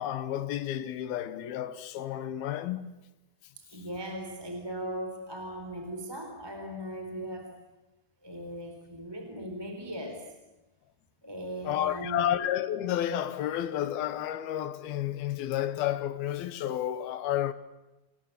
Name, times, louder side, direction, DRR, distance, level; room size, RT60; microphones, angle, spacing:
voice 1, 0.0-2.9 11.6-17.5, left 11 dB, 70° left, 2.8 m, -31 dB
voice 2, 3.6-7.5 8.2-10.2 11.2-12.3, equal, 5° right, 3.3 m, -38 dB
29.0 x 21.5 x 8.5 m
omnidirectional pair, 4.9 m